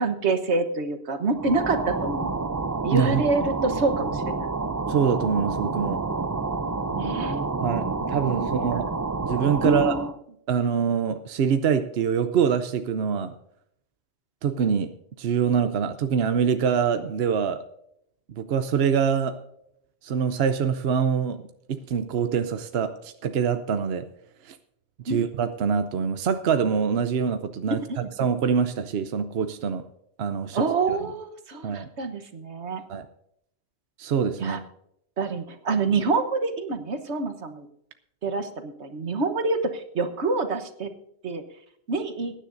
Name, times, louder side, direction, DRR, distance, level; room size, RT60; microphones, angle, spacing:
voice 1, 0.0-2.3 2.8-4.5 6.9-7.6 8.2-8.8 9.6-10.1 25.1-25.2 27.7-28.1 30.5-32.8 34.4-34.6 35.2-37.7 38.2-40.9 41.2-41.4 41.9-42.3, right 3 dB, 85° right, 7 dB, 1.5 m, -27 dB
sound 1, 1.3-10.2, right 3 dB, 30° right, 0.3 m, -29 dB
voice 2, 2.9-3.2 4.9-6.0 7.6-8.9 9.2-9.9 10.5-13.3 14.4-14.9 15.2-17.6 18.3-19.4 20.0-21.4 21.7-24.1 24.4-24.6 25.0-27.8 28.2-29.8 30.2-31.0 31.6-31.9 32.9-33.0 34.0-34.6, right 7 dB, 65° right, 9 dB, 0.9 m, -24 dB
22.0 x 10.0 x 2.6 m, 0.73 s
omnidirectional pair, 1.1 m